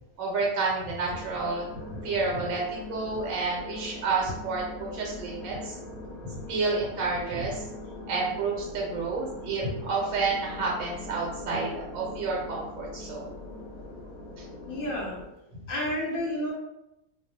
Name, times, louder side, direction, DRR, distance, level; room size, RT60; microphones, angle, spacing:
voice 1, 0.2-5.8 6.2-7.7 8.1-13.3 14.4-14.5, right 3 dB, 75° right, -3 dB, 1.0 m, -30 dB
sound 1, 1.1-15.2, left 2 dB, 90° left, 1.1 m, -42 dB
voice 2, 14.6-15.2 15.7-16.5, left 1 dB, 55° left, -3 dB, 0.7 m, -30 dB
2.4 x 2.0 x 2.6 m, 0.89 s
omnidirectional pair, 1.4 m